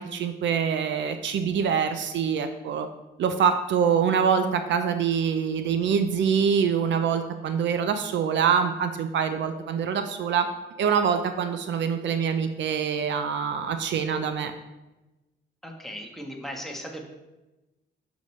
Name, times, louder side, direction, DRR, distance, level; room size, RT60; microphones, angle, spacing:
voice 1, 0.0-2.9 3.2-10.5 10.8-14.5, right 7 dB, 65° right, 8 dB, 0.6 m, -25 dB
voice 2, 15.6-17.0, equal, ahead, 0 dB, 1.3 m, -37 dB
7.0 x 6.4 x 3.2 m, 1.0 s
cardioid pair, 90°, 20 cm